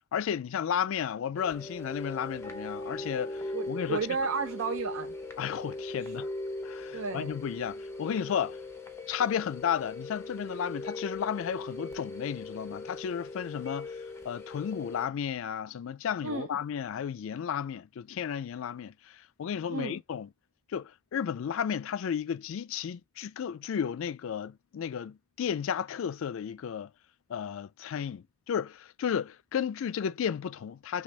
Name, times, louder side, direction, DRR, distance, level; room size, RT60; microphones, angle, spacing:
voice 1, 0.1-4.1 5.4-6.3 6.6-8.6 9.1-20.3 20.7-26.9 27.3-31.0, left 8 dB, 65° left, 0.3 m, -33 dB
sound 1, 1.4-15.1, left 2 dB, 10° left, 0.7 m, -40 dB
voice 2, 3.5-5.1 6.9-7.3 16.2-16.5 19.7-20.0, right 4 dB, 65° right, 0.5 m, -32 dB
6.0 x 2.3 x 3.2 m
head